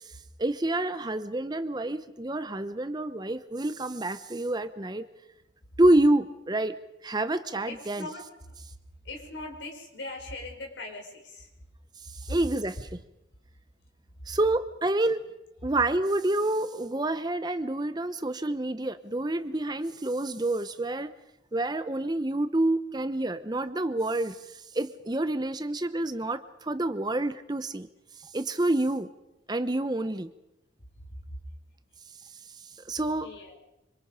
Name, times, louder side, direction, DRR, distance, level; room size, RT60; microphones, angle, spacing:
voice 1, 0.0-5.1 5.8-6.8 7.0-8.1 12.0-12.8 14.3-15.2 15.6-21.1 21.5-27.9 28.2-29.1 29.5-30.3 32.4-33.3, right 1 dB, 20° right, 11 dB, 0.8 m, -28 dB
voice 2, 7.7-8.6 9.0-11.5 12.3-12.4 31.1-31.4 33.2-33.6, left 1 dB, 70° left, 2 dB, 5.0 m, -40 dB
26.0 x 25.5 x 5.0 m, 0.92 s
head